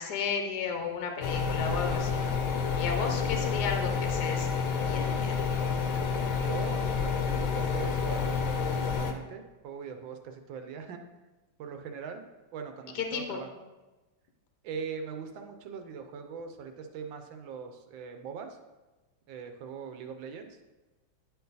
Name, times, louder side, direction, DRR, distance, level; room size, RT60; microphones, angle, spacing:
voice 1, 0.0-2.2 2.8-4.5 4.8-5.4 12.9-13.4, left 6 dB, 65° left, 4 dB, 1.2 m, -33 dB
sound 1, 1.2-9.1, left 5 dB, 85° left, 1.6 m, -29 dB
voice 2, 6.4-11.0 11.6-12.2 12.5-13.5 14.6-18.6 19.3-20.6, right 6 dB, 75° right, 6 dB, 1.4 m, -41 dB
9.8 x 4.6 x 4.0 m, 1.1 s
omnidirectional pair, 2.2 m